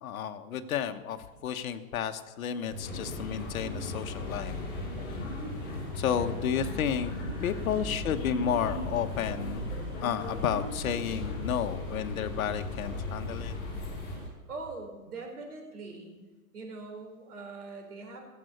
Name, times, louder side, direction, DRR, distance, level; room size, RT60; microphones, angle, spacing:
voice 1, 0.0-4.6 5.1-5.2 5.9-7.1 7.4-9.7 10.0-13.5, left 8 dB, 70° left, 8 dB, 1.2 m, -32 dB
sound 1, 2.7-14.3, right 1 dB, 10° right, 3.3 m, -41 dB
sound 2, 2.8-14.2, left 3 dB, 20° left, 5.6 m, -38 dB
voice 2, 14.5-16.2 16.5-18.2, right 3 dB, 90° right, 2 dB, 4.2 m, -42 dB
17.0 x 7.8 x 6.6 m, 1.2 s
hypercardioid pair, 145°, 44 cm